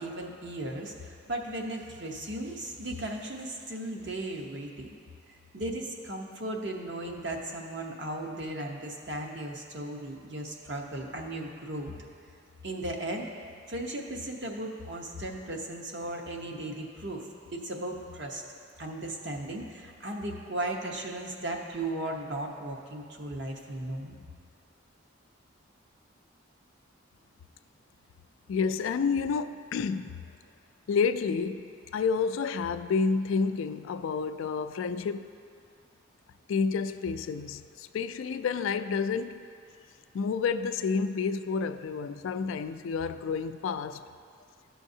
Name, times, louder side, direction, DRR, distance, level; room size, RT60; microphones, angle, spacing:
voice 1, 0.0-4.9 5.5-11.9 12.6-13.3 13.7-18.4 18.8-24.2, right 1 dB, 55° right, 1 dB, 0.9 m, -36 dB
voice 2, 28.5-30.2 30.9-35.3 36.5-39.5 40.1-44.0, left 5 dB, 75° left, 10 dB, 0.3 m, -29 dB
14.5 x 6.2 x 2.7 m, 2.3 s
head